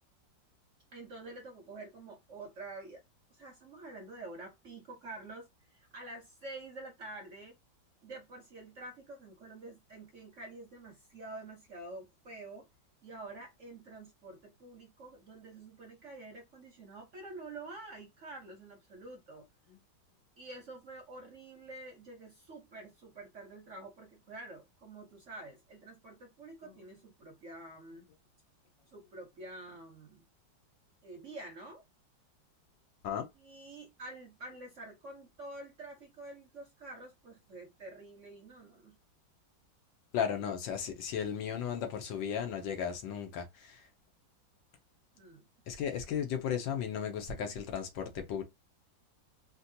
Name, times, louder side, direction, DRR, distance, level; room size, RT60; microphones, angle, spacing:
voice 1, 0.9-3.0 3.3-7.6 8.0-12.7 13.0-19.5 20.4-28.1 28.9-30.2 31.0-31.8 33.4-39.0 45.2-45.5, right 2 dB, 60° right, 0.8 m, -48 dB
voice 2, 40.1-43.8 45.7-48.4, left 8 dB, 80° left, 1.5 m, -35 dB
4.0 x 2.3 x 2.7 m
omnidirectional pair, 2.0 m